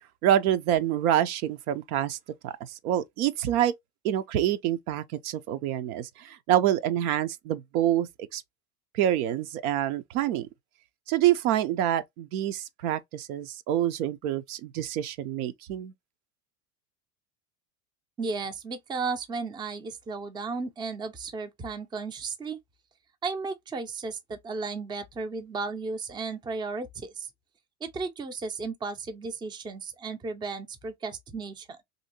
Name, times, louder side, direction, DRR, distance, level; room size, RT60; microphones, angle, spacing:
voice 1, 0.2-2.2 2.4-3.7 4.0-8.4 8.9-10.5 11.1-15.9, right 11 dB, 70° right, 0.6 m, -27 dB
voice 2, 18.2-22.6 23.2-27.3 27.8-31.8, right 4 dB, 10° right, 0.4 m, -34 dB
3.0 x 2.7 x 2.8 m
hypercardioid pair, 90°, 46 cm